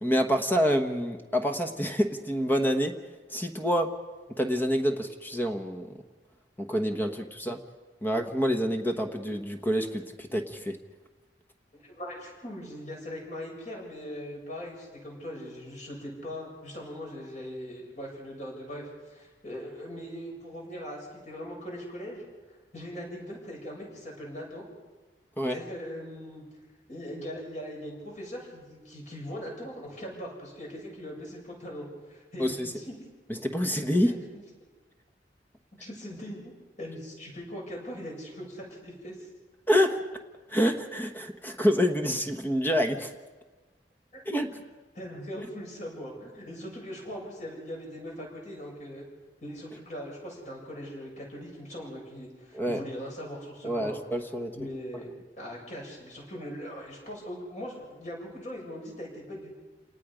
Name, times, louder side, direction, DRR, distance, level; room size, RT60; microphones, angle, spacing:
voice 1, 0.0-2.9 3.3-3.9 4.4-5.9 6.6-7.6 8.0-10.8 25.4-25.6 32.4-32.7 33.3-34.1 39.7-40.0 40.5-43.1 44.2-44.5 52.5-52.8 53.6-54.7, equal, 10° left, 5 dB, 1.2 m, -27 dB
voice 2, 11.7-22.2 22.7-24.6 25.5-26.4 26.9-32.9 34.0-34.4 35.8-36.5 36.8-39.3 44.1-44.2 44.9-49.0 49.4-54.0 54.5-59.5, equal, 45° left, -1 dB, 7.6 m, -40 dB
29.0 x 19.0 x 5.1 m, 1.3 s
head